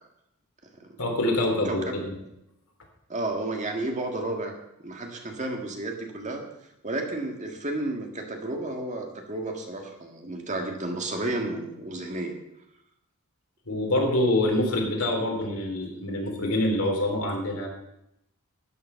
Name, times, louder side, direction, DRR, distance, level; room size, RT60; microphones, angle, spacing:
voice 1, 1.0-2.2 13.7-17.7, left 1 dB, 75° left, 1 dB, 3.5 m, -25 dB
voice 2, 1.6-2.0 3.1-4.5 4.8-6.4 6.8-12.3, right 2 dB, 35° right, 2 dB, 1.8 m, -32 dB
13.0 x 9.2 x 5.7 m, 0.83 s
head